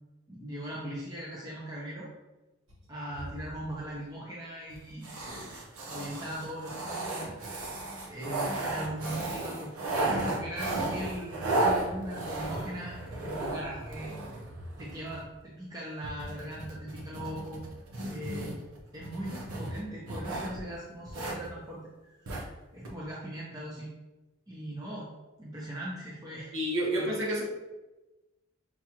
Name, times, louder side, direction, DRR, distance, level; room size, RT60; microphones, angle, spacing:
voice 1, 0.3-2.1 2.9-5.1 5.9-7.3 8.0-13.0 13.2-14.1 14.8-17.6 18.1-18.6 18.9-22.5 22.7-23.9 24.5-25.1 25.4-26.5 26.9-27.2, right 1 dB, 15° right, -5 dB, 0.6 m, -39 dB
sound 1, 3.1-3.8 4.7-4.8 5.0-15.3 16.0-20.6 21.1-21.5 22.3-22.5 22.8-22.9, right 2 dB, 90° right, 0.8 m, -34 dB
voice 2, 26.5-27.4, right 1 dB, 60° right, -4 dB, 1.2 m, -29 dB
5.8 x 2.4 x 2.9 m, 1.1 s
head